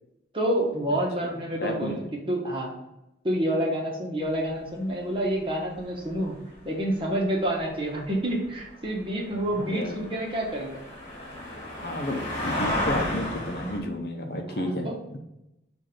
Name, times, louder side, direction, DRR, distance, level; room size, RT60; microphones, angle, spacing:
voice 1, 0.3-2.7 3.2-6.4 6.6-10.8 14.5-15.0, right 1 dB, 30° right, -2 dB, 1.2 m, -28 dB
voice 2, 1.6-2.1 9.4-10.0 11.8-15.2, left 1 dB, 55° left, 4 dB, 0.7 m, -32 dB
Heavy Trucks pass by - Fast Speed, 4.3-4.4 5.2-5.3 5.7-6.5 7.1-13.8, left 1 dB, 30° left, 1.8 m, -33 dB
7.4 x 2.6 x 5.2 m, 0.89 s
head